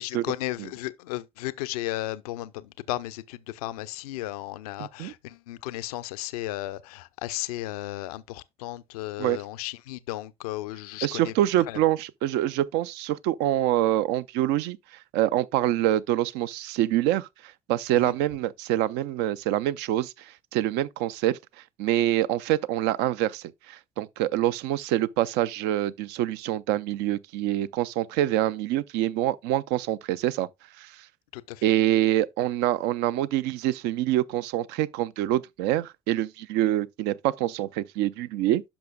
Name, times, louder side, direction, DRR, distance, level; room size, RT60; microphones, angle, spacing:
voice 1, 0.0-11.3 11.7-11.8 17.9-18.1 31.3-31.6, left 16 dB, 75° left, 0.5 m, -34 dB
voice 2, 4.8-5.1 9.2-9.4 11.0-21.4 21.8-30.5 30.8-31.1 31.6-38.6, right 13 dB, 65° right, 0.4 m, -26 dB
10.0 x 6.1 x 2.2 m
figure-of-eight pair, 50°, 19 cm